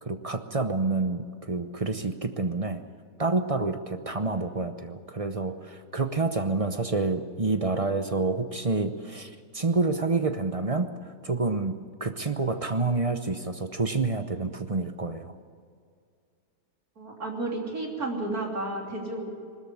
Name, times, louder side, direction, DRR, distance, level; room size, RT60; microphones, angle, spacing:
voice 1, 0.0-2.8 3.2-10.9 11.2-11.7 12.0-15.3, right 3 dB, 30° right, 8 dB, 0.7 m, -28 dB
voice 2, 17.0-19.3, right 2 dB, 70° right, 0 dB, 3.6 m, -32 dB
20.5 x 13.5 x 9.8 m, 2.3 s
omnidirectional pair, 1.6 m